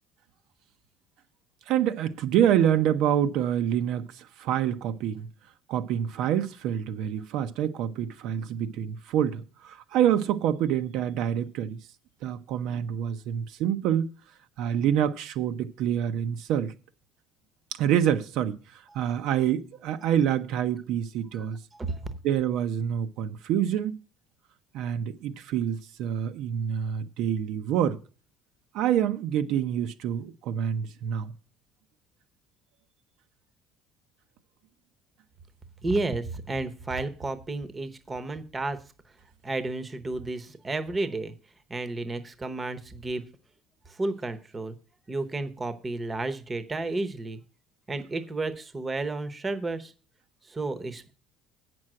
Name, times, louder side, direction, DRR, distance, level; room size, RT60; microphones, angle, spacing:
voice 1, 1.7-5.3 5.7-11.8 12.2-14.1 14.6-16.7 17.8-21.6 22.2-24.0 24.7-28.0 28.7-31.3, right 10 dB, 65° right, 0.7 m, -27 dB
voice 2, 21.7-22.1 35.8-38.8 39.4-41.3 41.7-43.2 43.9-44.8 45.1-47.4 47.9-49.9 50.5-51.1, right 2 dB, 15° right, 0.8 m, -32 dB
8.5 x 6.1 x 7.6 m
cardioid pair, 155°, 0 cm